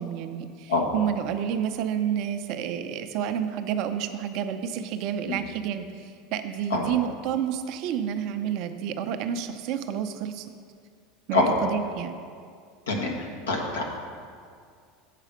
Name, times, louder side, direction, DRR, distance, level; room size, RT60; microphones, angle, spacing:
voice 1, 0.0-10.5 11.3-12.2, right 9 dB, 55° right, 8 dB, 0.5 m, -30 dB
voice 2, 12.9-13.8, left 3 dB, 85° left, 0 dB, 1.2 m, -25 dB
7.5 x 4.8 x 6.2 m, 2.2 s
hypercardioid pair, 80°, 0 cm